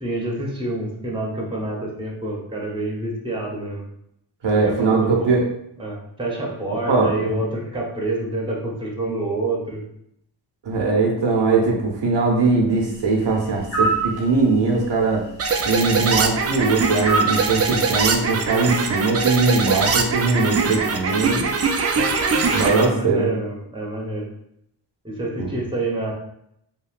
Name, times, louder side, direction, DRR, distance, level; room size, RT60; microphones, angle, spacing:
voice 1, 0.0-3.9 4.6-5.3 5.8-9.8 10.8-11.0 22.0-24.3 25.0-26.1, right 2 dB, 10° right, -2 dB, 0.9 m, -27 dB
voice 2, 4.4-5.5 6.9-7.4 10.6-15.2 15.6-21.5 22.5-23.3 25.4-25.5, right 3 dB, 70° right, -1 dB, 0.7 m, -20 dB
sound 1, 13.7-14.1 17.0-17.5, right 3 dB, 85° left, 1.4 m, -21 dB
sound 2, 15.4-22.9, right 4 dB, 35° right, 0.4 m, -22 dB
2.9 x 2.6 x 2.4 m, 0.75 s
cardioid pair, 60°, 44 cm